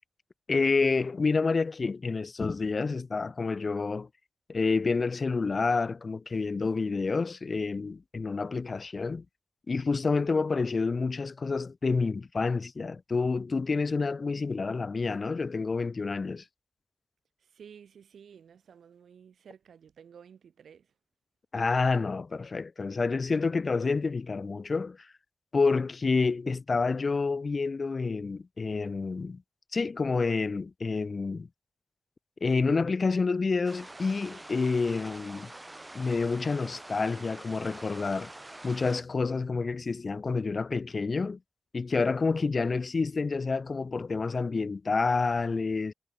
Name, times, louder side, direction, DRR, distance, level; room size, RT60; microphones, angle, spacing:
voice 1, 0.5-4.1 4.5-9.2 9.7-16.4 21.5-25.1 25.5-29.4 29.7-31.5 32.4-35.5 35.9-38.3 38.6-41.4 41.7-45.9, left 4 dB, 55° left, 0.4 m, -28 dB
voice 2, 17.4-20.9, right 7 dB, 85° right, 2.1 m, -53 dB
sound 1, 33.6-39.0, right 1 dB, 20° right, 0.5 m, -46 dB
cardioid pair, 50°, 0 cm